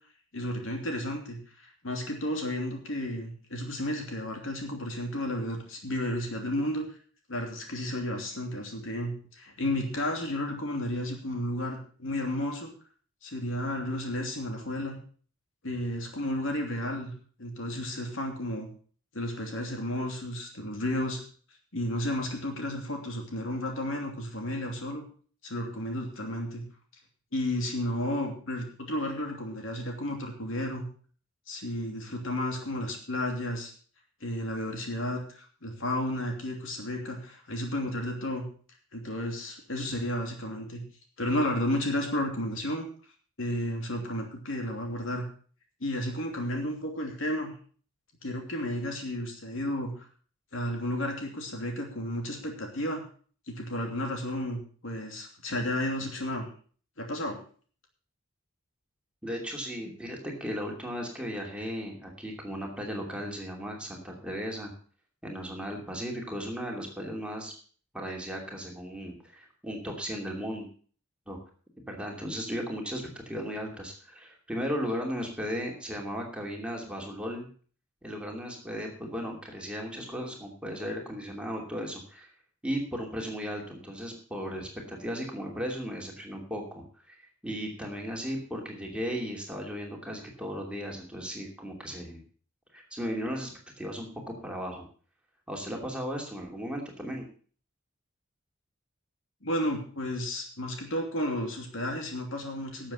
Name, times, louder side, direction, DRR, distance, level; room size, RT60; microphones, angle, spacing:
voice 1, 0.3-1.4 1.8-6.9 7.3-12.7 13.2-15.0 15.6-17.1 17.4-18.7 19.1-21.2 21.7-25.1 25.4-26.6 27.3-30.9 31.5-33.7 34.2-38.4 38.9-40.8 41.2-42.8 43.4-45.3 45.8-47.5 48.2-49.9 50.5-53.0 53.5-56.5 57.0-57.4 99.4-102.9, left 1 dB, 65° left, 2 dB, 2.9 m, -32 dB
voice 2, 59.2-64.7 65.2-67.5 67.9-70.7 71.3-71.4 71.9-77.5 78.0-82.3 82.6-87.2 87.4-92.2 92.7-93.5 93.8-94.1 94.4-94.8 95.5-97.3, equal, 5° right, 0 dB, 2.7 m, -36 dB
12.0 x 7.4 x 6.6 m, 0.43 s
head